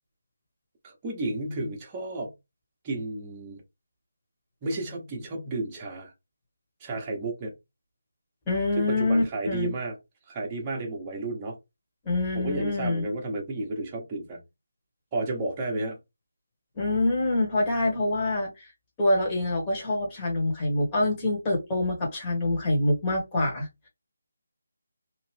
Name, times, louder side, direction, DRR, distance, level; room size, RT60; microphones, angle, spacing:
voice 1, 0.8-2.3 2.8-3.6 4.6-6.1 6.8-7.5 8.8-10.0 10.3-11.6 12.3-14.4 15.1-16.0, right 2 dB, 20° right, 1.0 m, -32 dB
voice 2, 8.5-9.7 12.0-13.0 16.7-18.7 19.0-23.9, left 2 dB, 20° left, 1.5 m, -26 dB
2.9 x 2.4 x 3.3 m
figure-of-eight pair, 160°, 0 cm